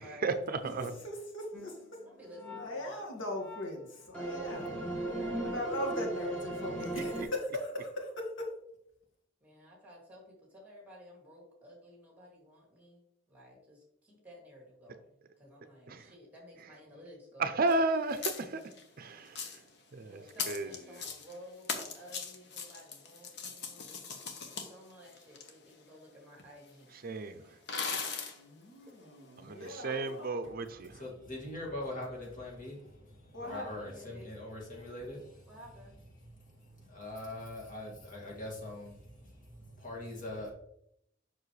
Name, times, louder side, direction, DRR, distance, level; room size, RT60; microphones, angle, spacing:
voice 1, 0.0-0.9 6.9-7.3 15.9-16.1 17.4-18.6 19.0-19.6 19.9-20.7 27.0-27.6 29.4-31.0, right 3 dB, 50° right, 0.5 m, -33 dB
voice 2, 1.0-1.8 2.6-4.8 5.4-8.5 28.3-30.3 33.3-33.7, left 1 dB, 80° left, 1.9 m, -39 dB
sound 1, 1.5-1.8 2.1-2.7 3.4-3.7 4.1-7.2, right 1 dB, 5° left, 1.6 m, -37 dB
voice 3, 2.0-3.0 9.4-17.6 20.0-24.1 24.4-27.9 28.8-28.9 33.4-34.3 35.5-36.0, equal, 10° right, 2.5 m, -54 dB
sound 2, 17.7-17.8 18.1-18.8 19.3-19.7 20.3-21.4 21.6-25.5 26.4-26.5 26.7-26.8 27.7-28.4, left 5 dB, 60° left, 1.1 m, -39 dB
voice 4, 30.9-35.5 36.3-40.5, left 1 dB, 45° left, 2.3 m, -43 dB
7.2 x 6.0 x 3.2 m
head